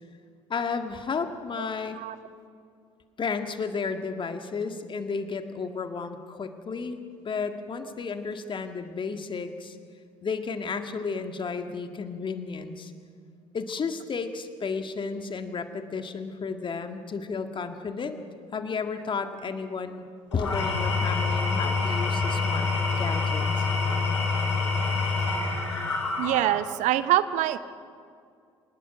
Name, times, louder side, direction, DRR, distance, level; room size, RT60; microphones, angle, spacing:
voice 1, 0.5-2.0 3.2-7.0 7.3-9.8 10.2-12.9 13.5-18.2 18.5-20.1 20.3-22.7 23.0-23.7, left 5 dB, 35° left, 7 dB, 1.8 m, -32 dB
Engine / Tools, 20.3-26.7, left 4 dB, 80° left, 3.9 m, -27 dB
voice 2, 26.2-27.6, right 13 dB, 55° right, 14 dB, 0.8 m, -24 dB
25.0 x 20.0 x 6.1 m, 2.4 s
figure-of-eight pair, 55°, 15 cm